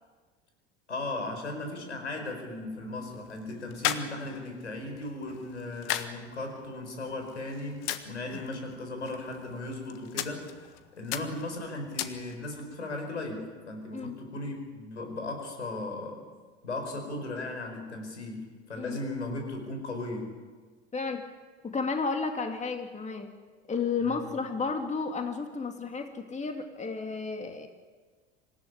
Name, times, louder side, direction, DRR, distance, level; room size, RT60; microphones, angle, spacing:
voice 1, 0.9-10.5 11.0-16.2 16.6-20.4 24.0-24.2, left 2 dB, 80° left, 4 dB, 4.9 m, -37 dB
sound 1, 2.6-12.6, left 12 dB, 50° left, 1.6 m, -39 dB
voice 2, 20.9-21.2 21.6-23.3 23.7-27.7, left 4 dB, 20° left, 5 dB, 2.5 m, -32 dB
26.0 x 15.5 x 10.0 m, 1.4 s
figure-of-eight pair, 70°, 34 cm